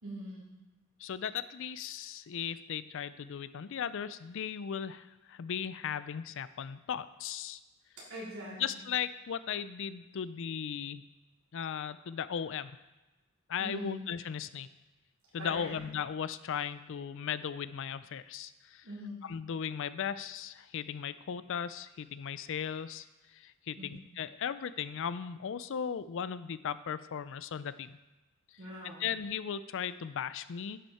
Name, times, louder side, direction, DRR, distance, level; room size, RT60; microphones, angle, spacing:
voice 1, 0.0-0.4 8.0-8.8 13.6-14.0 15.4-15.8 18.8-19.2 23.8-24.0 28.6-29.0, left 1 dB, 75° right, -6 dB, 3.6 m, -42 dB
voice 2, 1.0-7.6 8.6-11.0 11.5-12.7 13.5-14.7 15.3-18.9 19.2-23.1 23.3-28.0 29.0-30.8, left 8 dB, 65° left, 14 dB, 0.4 m, -37 dB
11.0 x 6.3 x 4.3 m, 1.1 s
head